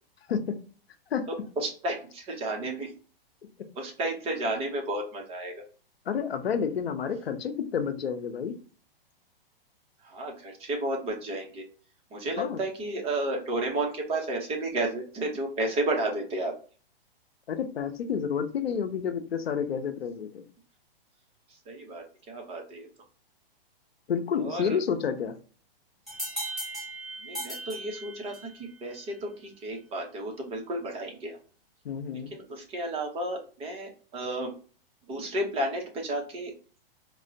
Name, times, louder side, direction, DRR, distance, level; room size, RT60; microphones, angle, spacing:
voice 1, 1.6-2.9 3.8-5.5 10.0-11.6 12.1-16.5 21.7-22.9 24.4-24.8 27.2-31.4 32.3-34.5 35.1-36.5, right 1 dB, 20° right, 2 dB, 0.7 m, -32 dB
voice 2, 6.1-8.5 12.4-12.6 17.5-20.4 24.1-25.3 31.8-32.3, left 7 dB, 90° left, 8 dB, 0.6 m, -30 dB
sound 1, 26.1-28.6, right 1 dB, ahead, 1.5 m, -37 dB
4.3 x 2.0 x 2.6 m, 0.39 s
hypercardioid pair, 125°, 30 cm